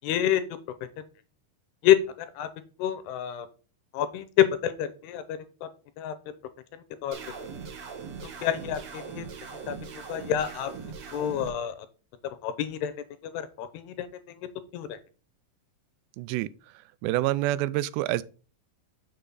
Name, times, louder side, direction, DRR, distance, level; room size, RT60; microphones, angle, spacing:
voice 1, 0.0-0.4 1.8-2.5 2.8-3.5 3.9-4.2 4.6-5.7 6.0-6.1 7.0-7.2 8.4-9.3 9.7-9.8 10.1-10.7 11.1-11.8 12.4-12.9 13.2-14.1 14.7-15.0, left 10 dB, 80° left, 2.8 m, -28 dB
sound 1, 7.1-11.5, right 6 dB, 60° right, 1.7 m, -40 dB
voice 2, 16.2-16.5 17.0-18.2, right 16 dB, 90° right, 2.7 m, -27 dB
7.1 x 6.5 x 3.8 m
omnidirectional pair, 4.9 m